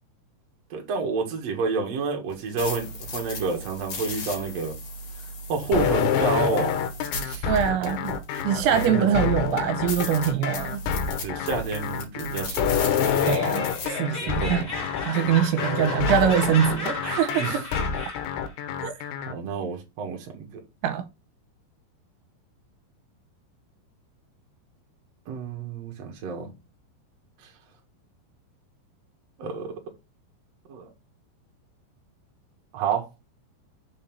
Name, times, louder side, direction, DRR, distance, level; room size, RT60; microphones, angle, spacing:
voice 1, 0.7-4.7 5.5-6.7 7.2-7.5 7.8-7.9 8.5-9.1 11.2-12.6 14.2-14.7 17.4-17.6 19.3-20.5 25.3-26.5 29.4-29.7 30.7-30.9 32.7-33.1, right 5 dB, 50° right, 2.1 m, -29 dB
sound 1, 2.3-9.1 9.5-9.6 9.9-13.9, left 2 dB, 55° left, 3.5 m, -36 dB
sound 2, 5.7-19.3, left 8 dB, 80° left, 3.2 m, -27 dB
voice 2, 7.5-8.2 8.4-10.8 13.3-14.7 15.1-17.5 18.8-19.1 20.8-21.0, right 9 dB, 85° right, 3.0 m, -23 dB
Laughter, 12.9-18.4, left 2 dB, 20° left, 1.1 m, -34 dB
6.9 x 4.1 x 5.3 m
omnidirectional pair, 5.4 m